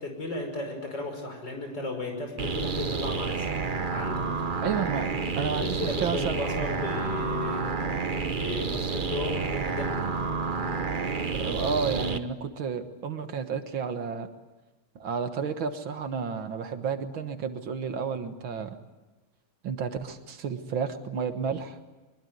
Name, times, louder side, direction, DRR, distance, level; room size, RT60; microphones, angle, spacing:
voice 1, 0.0-3.5 3.9-4.3 5.4-10.1, left 2 dB, 55° left, 3 dB, 6.2 m, -35 dB
sound 1, 2.4-12.2, right 5 dB, 40° right, 0.7 m, -30 dB
voice 2, 4.6-7.1 11.3-14.3 15.0-18.8 19.6-21.8, right 6 dB, 70° right, 8 dB, 2.2 m, -32 dB
23.5 x 22.0 x 9.3 m, 1.2 s
omnidirectional pair, 2.3 m